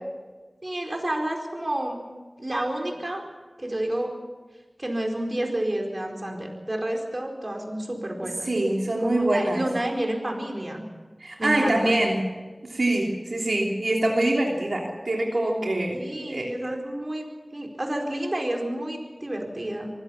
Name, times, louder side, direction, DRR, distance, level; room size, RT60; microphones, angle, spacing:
voice 1, 0.6-2.0 2.4-3.2 3.6-4.1 4.8-8.5 9.0-10.8 11.4-12.0 15.9-17.2 17.5-19.9, right 1 dB, 45° right, 2 dB, 4.6 m, -30 dB
voice 2, 8.4-9.6 11.2-12.2 12.6-16.0 16.3-16.5, right 1 dB, 85° right, -1 dB, 3.2 m, -24 dB
24.5 x 16.0 x 7.2 m, 1.3 s
wide cardioid pair, 45°, 0 cm